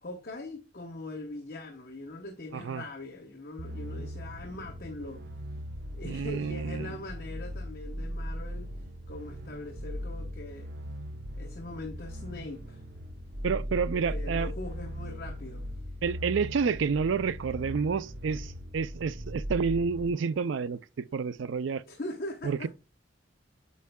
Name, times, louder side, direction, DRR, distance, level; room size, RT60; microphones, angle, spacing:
voice 1, 0.0-5.2 5.9-8.7 9.1-10.7 11.3-12.8 13.9-15.7 21.9-22.7, left 2 dB, 50° left, 0.8 m, -41 dB
voice 2, 2.5-2.8 6.0-6.9 13.4-14.5 16.0-21.8 22.4-22.7, right 5 dB, 70° right, 0.4 m, -29 dB
sound 1, 3.6-20.1, equal, 55° right, 0.8 m, -39 dB
8.2 x 5.4 x 2.2 m
head